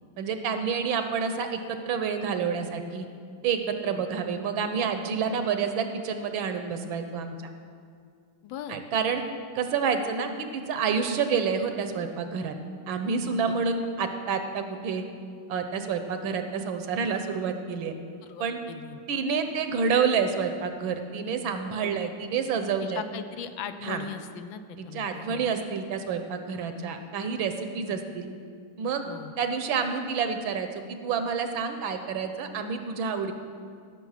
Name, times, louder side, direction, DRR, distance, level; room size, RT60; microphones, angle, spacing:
voice 1, 0.2-3.1 3.4-7.5 8.7-9.2 9.5-12.5 12.9-15.0 15.5-17.9 18.4-18.6 19.1-23.0 23.8-24.0 24.8-28.3 28.8-29.0 29.4-33.3, right 6 dB, 75° right, 7 dB, 1.6 m, -28 dB
voice 2, 8.4-8.8 13.4-13.5 18.2-19.0 21.7-22.0 22.8-25.5 27.9-28.0 29.1-29.3, left 8 dB, 75° left, 10 dB, 1.3 m, -39 dB
16.0 x 7.0 x 5.7 m, 2.2 s
omnidirectional pair, 2.3 m